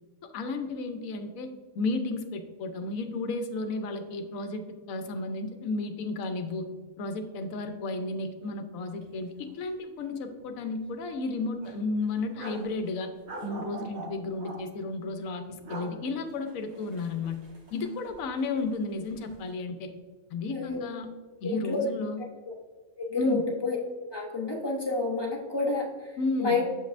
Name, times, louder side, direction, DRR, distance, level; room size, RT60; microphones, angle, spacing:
voice 1, 0.3-1.5 1.8-6.7 7.0-13.1 13.4-17.4 17.7-19.9 20.3-21.1 21.4-22.2 23.2-23.4 26.2-26.6, left 3 dB, 80° left, 7 dB, 1.1 m, -33 dB
sound 1, 9.0-9.1 9.4-9.5 10.0-10.6 11.0-11.1 11.6-12.7 13.3-14.6 15.5-15.9 16.3-18.3 18.6-19.3, right 2 dB, 85° right, 1.8 m, -43 dB
voice 2, 20.5-20.8 21.4-21.8 22.2-22.5 23.0-23.8 24.1-26.1 26.4-26.6, left 3 dB, 25° left, -2 dB, 0.7 m, -30 dB
7.3 x 5.2 x 2.5 m, 1.5 s
omnidirectional pair, 1.4 m